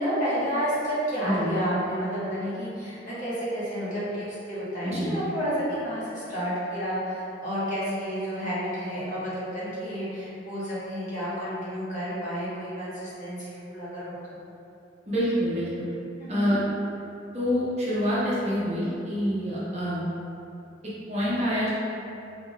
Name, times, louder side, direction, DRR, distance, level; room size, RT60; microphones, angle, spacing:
voice 1, 0.0-14.4 16.2-16.5, equal, 45° left, -10 dB, 1.4 m, -30 dB
voice 2, 15.1-15.9 16.3-16.6 17.3-20.0 21.1-21.7, equal, 35° right, -9 dB, 1.1 m, -26 dB
4.5 x 3.9 x 2.4 m, 2.8 s
head